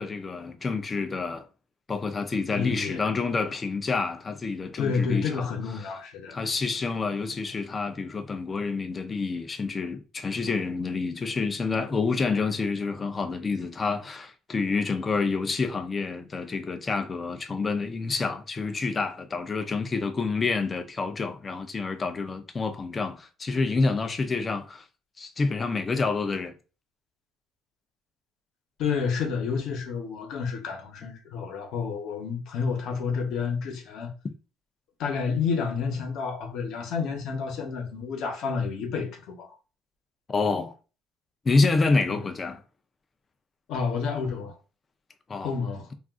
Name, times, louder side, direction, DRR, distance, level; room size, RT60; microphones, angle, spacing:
voice 1, 0.0-1.5 1.9-5.5 5.8-5.9 6.3-24.8 25.2-26.5 40.3-40.7 41.4-42.6 45.3-45.6, left 4 dB, 25° left, 0.4 m, -28 dB
voice 2, 2.5-3.0 4.8-6.3 28.8-34.1 35.0-39.5 42.1-42.2 43.7-44.6 45.4-45.9, left 5 dB, 65° left, 0.9 m, -30 dB
2.4 x 2.3 x 3.5 m
cardioid pair, 135°, 0 cm